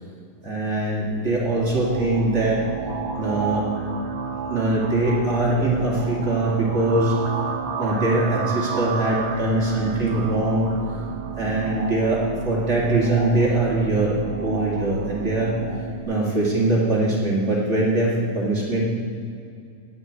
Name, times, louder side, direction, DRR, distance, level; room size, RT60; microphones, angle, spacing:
voice 1, 0.4-2.6 3.1-3.6 4.5-7.1 7.8-10.7 11.3-15.5 16.0-18.8, right 2 dB, 25° right, -4 dB, 1.6 m, -22 dB
sound 1, 1.1-16.0, right 5 dB, 85° right, 3.2 m, -31 dB
9.5 x 9.2 x 8.0 m, 2.4 s
omnidirectional pair, 4.6 m